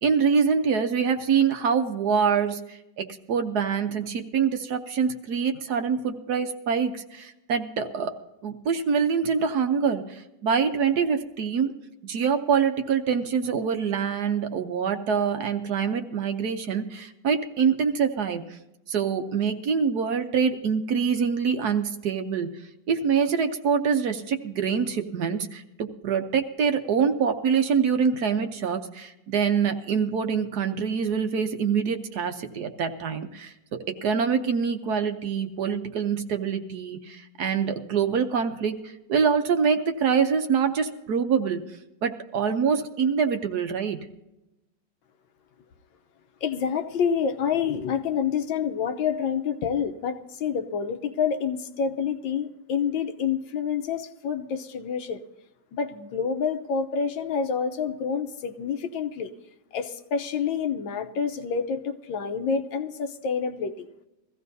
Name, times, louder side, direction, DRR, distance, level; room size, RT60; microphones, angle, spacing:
voice 1, 0.0-8.1 8.4-11.7 12.0-18.6 18.9-22.5 22.9-41.6 42.0-44.0, right 6 dB, 65° right, 7 dB, 1.3 m, -25 dB
voice 2, 46.4-55.2 55.7-59.3 59.7-63.9, left 6 dB, 85° left, 6 dB, 1.6 m, -28 dB
22.0 x 15.5 x 2.7 m, 0.93 s
omnidirectional pair, 2.0 m